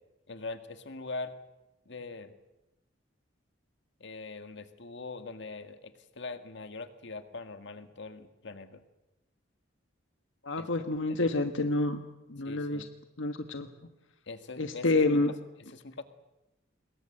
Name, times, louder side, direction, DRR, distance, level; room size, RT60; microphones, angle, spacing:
voice 1, 0.3-1.3 1.9-2.3 4.0-8.8 10.6-10.7 11.1-11.2 12.4-12.9 14.3-15.2 15.6-16.0, left 3 dB, 65° left, 8 dB, 1.9 m, -42 dB
voice 2, 10.4-12.0 12.3-12.8 13.2-13.7 14.6-15.3, left 2 dB, 85° left, 7 dB, 1.4 m, -28 dB
27.0 x 22.0 x 7.8 m, 0.96 s
head